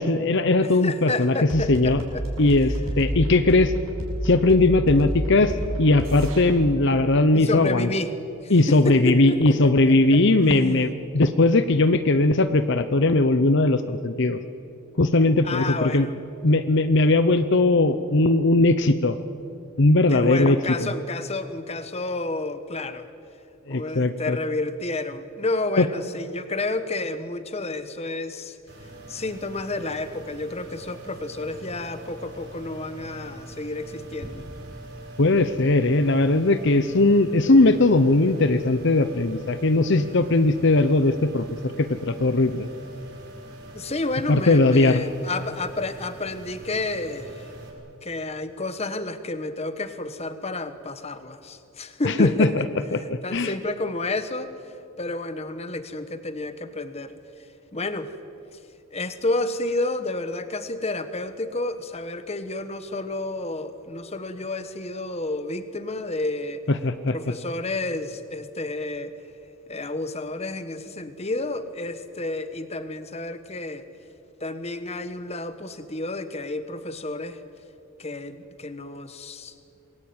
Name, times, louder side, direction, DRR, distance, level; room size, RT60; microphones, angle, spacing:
voice 1, 0.0-2.0 2.4-3.7 4.2-7.9 8.5-14.4 15.0-16.1 16.4-19.2 19.8-20.9 23.7-24.4 25.8-25.9 35.2-42.7 44.3-45.0 52.0-52.7 52.9-53.5 66.7-67.2, left 2 dB, 55° left, 11 dB, 0.9 m, -19 dB
voice 2, 0.8-2.2 7.3-8.1 8.4-10.9 15.4-16.1 20.1-23.1 23.7-28.6 29.1-34.5 43.7-47.5 48.0-52.7 53.2-54.6 55.0-57.2 57.7-58.1 58.9-66.6 67.1-69.1 69.7-73.8 74.4-77.4 78.0-79.5, left 2 dB, 30° left, 11 dB, 1.3 m, -30 dB
sound 1, 1.5-6.4, equal, 75° right, 7.3 m, -29 dB
sound 2, 28.7-47.7, right 2 dB, 50° right, 6.2 m, -43 dB
27.0 x 21.5 x 8.9 m, 2.7 s
head